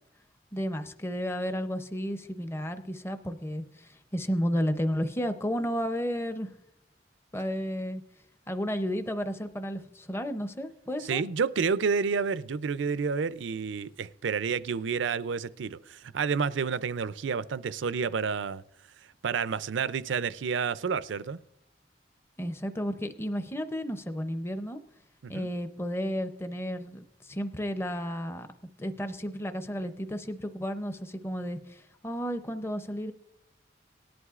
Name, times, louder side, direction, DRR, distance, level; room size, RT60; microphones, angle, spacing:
voice 1, 0.5-6.5 7.3-8.0 8.5-11.2 22.4-24.8 25.3-28.5 28.8-33.1, equal, 15° left, 0.6 m, -32 dB
voice 2, 11.0-18.6 19.2-21.4 25.2-25.5, right 5 dB, 80° right, 0.4 m, -30 dB
18.0 x 11.0 x 2.4 m
head